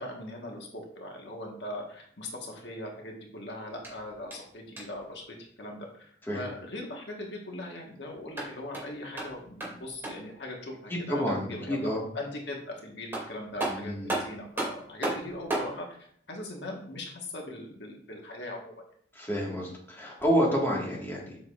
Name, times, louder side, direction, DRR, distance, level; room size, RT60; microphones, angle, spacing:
voice 1, 0.0-11.9 12.1-18.7, left 1 dB, 75° left, 0 dB, 1.4 m, -40 dB
sound 1, 3.8-5.1 8.1-10.4 12.6-12.7 13.1-15.7, right 2 dB, 15° right, 2.5 m, -35 dB
voice 2, 10.9-12.0 13.7-14.2 19.1-21.4, equal, 15° left, -3 dB, 1.6 m, -29 dB
7.5 x 6.5 x 2.5 m, 0.62 s
head